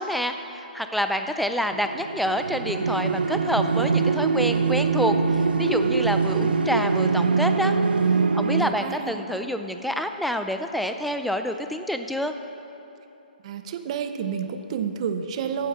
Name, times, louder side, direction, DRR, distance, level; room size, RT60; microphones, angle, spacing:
voice 1, 0.0-7.8 8.3-12.3, equal, ahead, 7 dB, 0.3 m, -27 dB
sound 1, 1.7-8.6, right 4 dB, 80° right, 0.6 m, -23 dB
voice 2, 8.6-9.2 13.4-15.7, right 7 dB, 40° right, 9 dB, 0.7 m, -30 dB
9.5 x 7.3 x 6.9 m, 3.0 s
hypercardioid pair, 145°, 5 cm